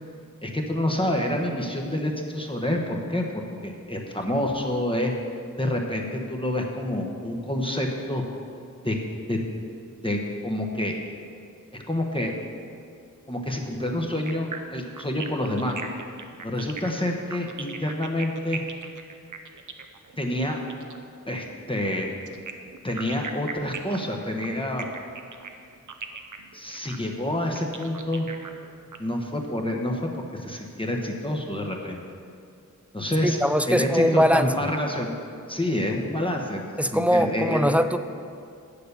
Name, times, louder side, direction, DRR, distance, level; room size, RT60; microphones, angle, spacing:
voice 1, 0.4-5.1 5.6-8.2 8.8-9.0 9.3-9.4 10.0-11.0 11.7-12.3 13.3-15.8 16.4-18.6 20.2-20.6 21.3-22.1 22.8-24.9 26.5-28.3 29.0-32.0 32.9-33.4 33.7-35.1 35.5-37.7, left 1 dB, 15° left, 0 dB, 0.9 m, -28 dB
sound 1, 14.3-21.0 22.3-29.0, right 5 dB, 70° right, 0.7 m, -38 dB
voice 2, 33.2-34.5 36.8-38.0, equal, 5° right, 10 dB, 0.3 m, -21 dB
8.3 x 6.8 x 6.7 m, 2.4 s
wide cardioid pair, 80°, 31 cm